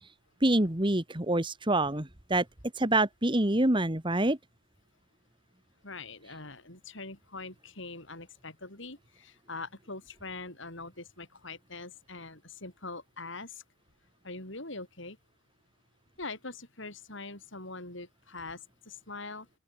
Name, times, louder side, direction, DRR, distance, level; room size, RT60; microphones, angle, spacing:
voice 1, 0.4-2.5 2.8-4.4, right 1 dB, 25° right, 1.9 m, -26 dB
voice 2, 5.8-13.6 14.2-15.2 16.2-18.6 18.9-19.5, left 3 dB, 60° left, 7.8 m, -43 dB
open air
head